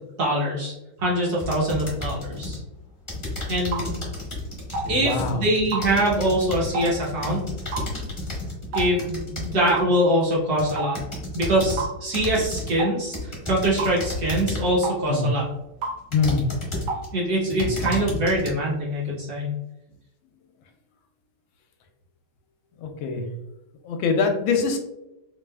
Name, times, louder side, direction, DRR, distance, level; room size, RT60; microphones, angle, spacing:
voice 1, 0.2-2.6 3.5-4.0 4.9-7.4 8.7-11.0 11.3-15.4 17.1-19.5, right 1 dB, 60° right, -4 dB, 1.2 m, -23 dB
sound 1, 1.4-2.6 3.1-9.8 10.3-11.8 12.1-12.8 13.1-14.8 15.4-15.5 16.1-17.1 17.4-18.5, left 2 dB, 25° left, 0.6 m, -32 dB
sound 2, 3.7-3.9 4.7-4.9 5.7-5.9 6.7-6.9 7.7-7.9 8.7-8.9 9.7-9.9 10.8-10.9 11.8-12.0 12.8-12.9 13.8-14.0 14.8-15.0 15.8-16.0 16.9-17.1 17.9-18.0, right 3 dB, 75° right, 1.6 m, -29 dB
voice 2, 4.8-5.4 15.1-15.3 16.1-16.4 17.5-18.1 22.8-23.3 23.8-24.8, left 4 dB, 80° left, 4 dB, 1.4 m, -24 dB
4.5 x 2.4 x 2.3 m, 0.91 s
omnidirectional pair, 2.2 m